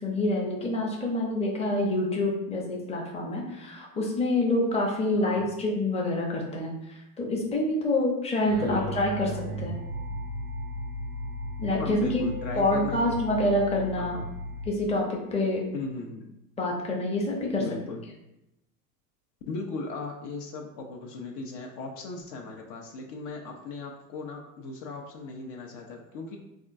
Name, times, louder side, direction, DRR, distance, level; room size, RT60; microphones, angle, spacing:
voice 1, 0.0-9.3 9.6-9.8 11.6-12.2 12.6-14.2 14.7-15.6 16.6-17.6, left 1 dB, 15° left, -1 dB, 0.6 m, -27 dB
sound 1, 8.3-14.7, equal, 25° right, 0.3 m, -36 dB
voice 2, 8.6-9.0 11.8-13.2 14.0-14.2 15.7-16.3 17.6-18.0 19.5-26.4, left 3 dB, 55° left, 2 dB, 0.6 m, -37 dB
3.5 x 2.3 x 2.5 m, 0.89 s
hypercardioid pair, 90°, 47 cm